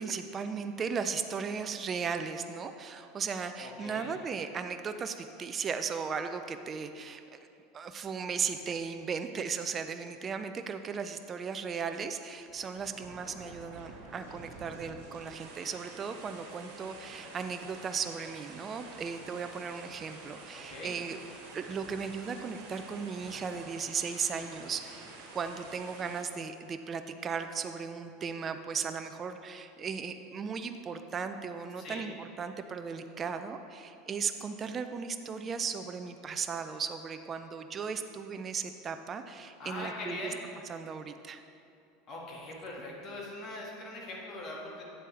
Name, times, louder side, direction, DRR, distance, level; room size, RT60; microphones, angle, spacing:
voice 1, 0.0-7.5 7.7-21.2 21.5-40.3 40.7-41.4, right 5 dB, 30° right, 8 dB, 0.4 m, -36 dB
voice 2, 3.6-4.1 20.5-20.9 31.8-32.0 39.6-40.4 42.1-44.8, left 2 dB, 45° left, -2 dB, 1.9 m, -41 dB
sound 1, 12.4-26.2, right 3 dB, 70° right, 1.4 m, -49 dB
9.2 x 7.5 x 3.3 m, 2.6 s
hypercardioid pair, 85°, 0 cm